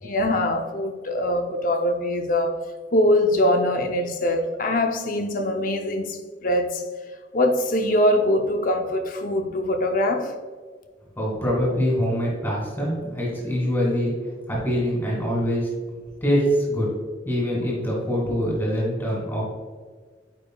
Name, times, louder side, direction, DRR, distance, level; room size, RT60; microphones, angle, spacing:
voice 1, 0.0-2.6 2.9-6.8 7.3-10.3, left 1 dB, 50° left, 4 dB, 0.6 m, -23 dB
voice 2, 11.2-14.1 14.5-15.7 16.2-16.9 17.2-19.4, equal, 20° left, -5 dB, 1.8 m, -24 dB
9.2 x 4.8 x 2.3 m, 1.5 s
head